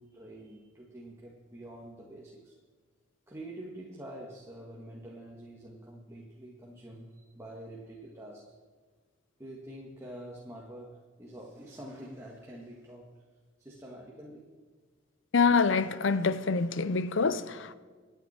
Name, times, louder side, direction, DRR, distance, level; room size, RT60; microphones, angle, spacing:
voice 1, 0.0-2.5 3.3-8.4 9.4-13.2 13.6-14.5, right 1 dB, 15° right, 1.8 m, -46 dB
voice 2, 15.3-17.7, left 4 dB, 70° left, 0.7 m, -26 dB
26.5 x 9.4 x 4.4 m
head